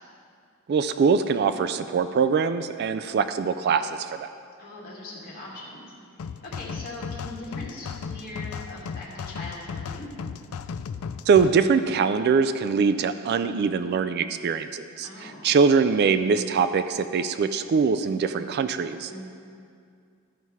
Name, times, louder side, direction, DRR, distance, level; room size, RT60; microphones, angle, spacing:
voice 1, 0.7-4.3 11.3-19.2, right 5 dB, 50° right, 11 dB, 0.3 m, -23 dB
voice 2, 4.6-5.8 6.4-10.1 15.0-15.4 19.0-19.2, left 2 dB, 45° left, -6 dB, 2.5 m, -40 dB
sound 1, 6.2-11.5, left 6 dB, 80° left, 0.4 m, -36 dB
13.5 x 5.6 x 4.7 m, 2.3 s
head